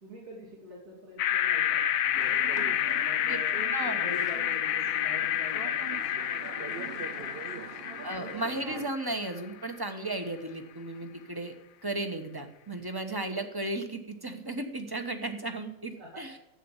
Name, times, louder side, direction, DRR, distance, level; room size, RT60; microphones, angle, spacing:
voice 1, 0.0-7.7 16.0-16.4, left 1 dB, 70° right, -3 dB, 3.8 m, -46 dB
sound 1, 1.2-9.4, left 11 dB, 70° left, 1.0 m, -29 dB
sound 2, 2.1-8.9, right 6 dB, 50° right, 0.8 m, -43 dB
voice 2, 3.7-4.1 8.0-11.5 11.8-16.3, right 2 dB, 15° right, 6 dB, 1.2 m, -35 dB
11.5 x 8.5 x 7.2 m, 0.91 s
omnidirectional pair, 1.7 m